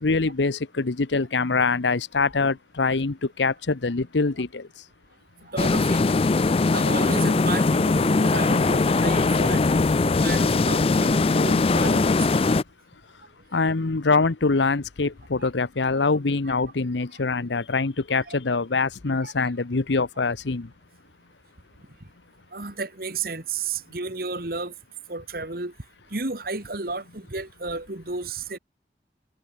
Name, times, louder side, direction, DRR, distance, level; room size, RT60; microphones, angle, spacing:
voice 1, 0.0-4.7 13.5-20.7, left 4 dB, 85° left, 0.9 m, -24 dB
voice 2, 5.4-6.3 6.7-9.6 10.0-12.3 15.4-15.5 16.5-16.6 18.1-18.6 19.2-19.3 22.5-24.7 25.1-25.7 26.1-28.6, right 3 dB, 55° right, 2.2 m, -32 dB
sound 1, 5.6-12.6, left 3 dB, 30° left, 0.4 m, -21 dB
head